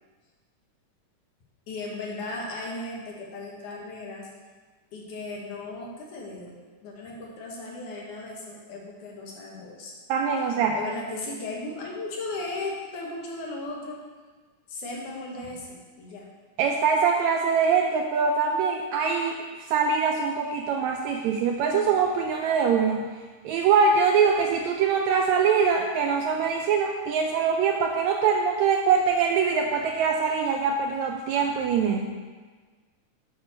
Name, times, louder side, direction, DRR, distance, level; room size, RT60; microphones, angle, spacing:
voice 1, 1.7-4.3 4.9-6.5 6.8-9.9 10.7-14.0 14.7-16.3, left 2 dB, 75° left, -2 dB, 2.7 m, -36 dB
voice 2, 10.1-10.8 16.6-23.1 23.4-32.0, right 6 dB, 80° right, 2 dB, 1.6 m, -23 dB
8.1 x 6.3 x 4.4 m, 1.4 s
omnidirectional pair, 3.6 m